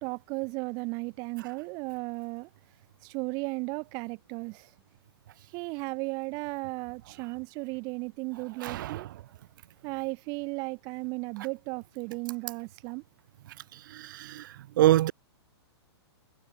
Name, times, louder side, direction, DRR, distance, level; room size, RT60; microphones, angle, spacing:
voice 1, 0.0-2.5 3.0-4.7 5.5-9.1 9.8-13.0, right 29 dB, 25° right, 1.0 m, -35 dB
voice 2, 8.6-9.1 13.9-14.4 14.8-15.1, right 14 dB, 45° right, 1.5 m, -25 dB
hypercardioid pair, 160°, 14 cm